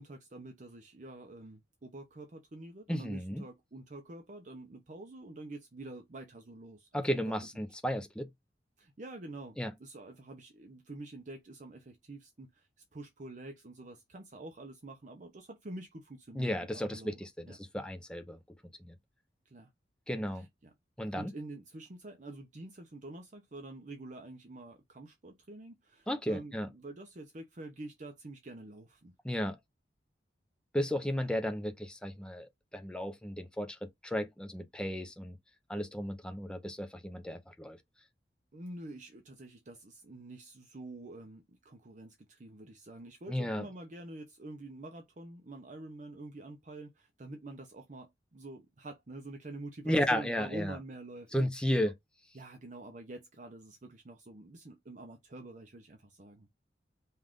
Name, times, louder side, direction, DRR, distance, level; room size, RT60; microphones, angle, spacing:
voice 1, 0.0-7.2 7.5-7.7 8.8-16.5 16.9-17.6 19.5-19.7 20.3-20.7 21.2-29.1 31.1-31.3 38.5-51.6 52.3-56.5, right 2 dB, 45° right, 0.7 m, -47 dB
voice 2, 2.9-3.4 6.9-8.3 9.6-9.7 16.3-18.4 18.8-18.9 20.1-20.4 21.0-21.3 26.1-26.7 29.2-29.6 30.7-35.4 35.7-37.8 43.3-43.7 49.8-50.8 51.3-51.9, equal, 5° left, 0.6 m, -34 dB
5.4 x 2.5 x 3.6 m
head